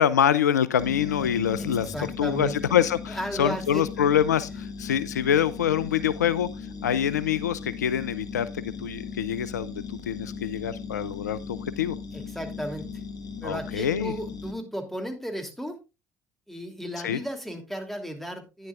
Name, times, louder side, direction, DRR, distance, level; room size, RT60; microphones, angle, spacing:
voice 1, 0.0-6.5 6.8-12.0 13.4-14.1 17.0-17.2, left 9 dB, 85° left, 17 dB, 0.4 m, -25 dB
sound 1, 0.8-14.5, left 5 dB, 45° left, 1.7 m, -38 dB
voice 2, 1.9-2.6 3.1-3.8 12.1-12.9 13.4-15.7 16.5-18.7, equal, ahead, 5 dB, 2.8 m, -34 dB
11.5 x 9.8 x 2.4 m, 0.27 s
hypercardioid pair, 60°, 9 cm